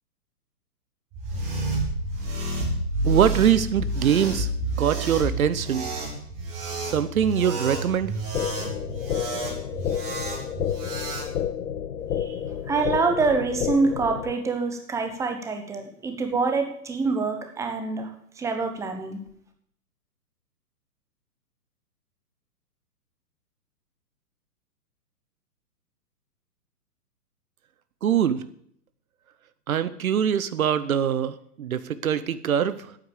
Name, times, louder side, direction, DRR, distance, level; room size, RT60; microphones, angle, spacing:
sound 1, 1.1-11.3, right 2 dB, 30° right, 3.8 m, -30 dB
voice 1, 3.0-4.5 4.8-5.9 6.8-8.1 28.0-28.4 29.7-33.0, right 9 dB, 60° right, 14 dB, 0.9 m, -23 dB
sound 2, 8.3-14.3, left 9 dB, 65° left, 1.0 m, -30 dB
voice 2, 12.7-19.2, right 4 dB, 5° right, 5 dB, 1.0 m, -26 dB
9.3 x 8.7 x 8.3 m, 0.67 s
figure-of-eight pair, 125°, 48 cm